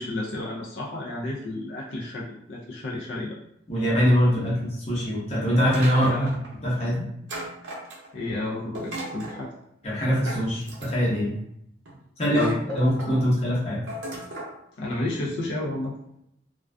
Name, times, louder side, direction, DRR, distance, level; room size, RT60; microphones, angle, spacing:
voice 1, 0.0-3.4 4.5-4.6 6.1-6.3 8.1-9.5 12.3-12.6 14.8-15.9, left 2 dB, 70° left, -4 dB, 0.4 m, -31 dB
voice 2, 3.7-6.3 6.6-7.0 9.8-11.3 12.2-13.8, equal, 35° left, -6 dB, 0.8 m, -23 dB
Planks Clattering, 5.7-6.5 7.3-8.2 8.7-9.4 10.2-11.2 11.8-12.0 12.3-13.2 13.9-14.5, right 1 dB, 75° right, 0.6 m, -36 dB
2.4 x 2.3 x 2.2 m, 0.76 s
head